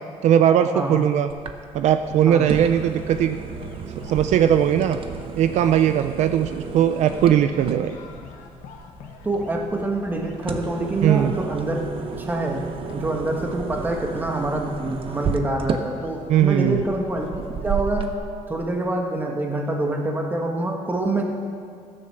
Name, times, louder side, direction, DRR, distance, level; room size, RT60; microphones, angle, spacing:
voice 1, 0.2-1.3 1.7-3.4 4.1-5.0 5.4-8.0 11.0-11.3 16.3-16.8, right 10 dB, 70° right, 9 dB, 0.5 m, -19 dB
sound 1, 1.3-18.1, right 6 dB, 45° right, 0.9 m, -33 dB
sound 2, 2.0-18.1, left 6 dB, 90° left, 1.3 m, -44 dB
voice 2, 9.2-11.8 12.2-12.6 12.9-18.1 18.5-21.2, right 2 dB, 15° right, 2 dB, 1.6 m, -26 dB
14.5 x 10.0 x 6.8 m, 2.2 s
cardioid pair, 155°, 12 cm